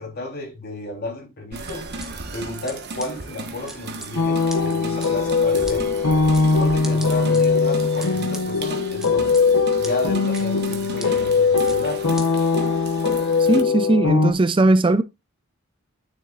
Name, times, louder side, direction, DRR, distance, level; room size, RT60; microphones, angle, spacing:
voice 1, 0.0-1.9 2.3-5.9 6.6-9.4 9.8-12.0, left 2 dB, 45° left, 3.6 m, -32 dB
sound 1, 1.5-13.6, right 3 dB, 50° right, 1.4 m, -36 dB
sound 2, 1.7-2.1 2.7-2.8 3.0-3.1 3.7-4.1 4.5-4.6 5.0-5.1 5.7-5.8 6.3-6.5 6.8-7.4 8.0-8.4 9.0-9.4 9.8-9.9 10.3-10.4 11.0-11.1 11.7-11.8 12.2-12.3, right 1 dB, ahead, 1.6 m, -37 dB
sound 3, 4.2-14.3, left 4 dB, 85° left, 1.0 m, -20 dB
voice 2, 13.4-15.0, right 2 dB, 25° right, 0.4 m, -18 dB
10.0 x 7.8 x 2.5 m
head